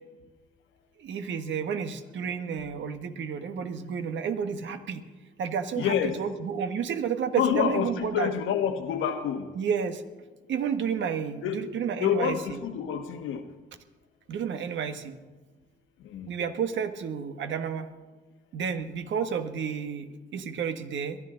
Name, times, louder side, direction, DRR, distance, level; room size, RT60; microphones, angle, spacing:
voice 1, 1.0-5.0 5.4-8.3 9.5-10.0 10.5-12.6 14.3-15.1 16.3-17.9 18.5-21.2, right 7 dB, 70° right, 8 dB, 1.4 m, -31 dB
voice 2, 5.7-6.2 7.4-9.5 11.4-11.7 12.0-13.4 16.1-16.3, left 8 dB, 85° left, 7 dB, 1.4 m, -27 dB
22.5 x 12.0 x 3.9 m, 1.3 s
cardioid pair, 90°, 20 cm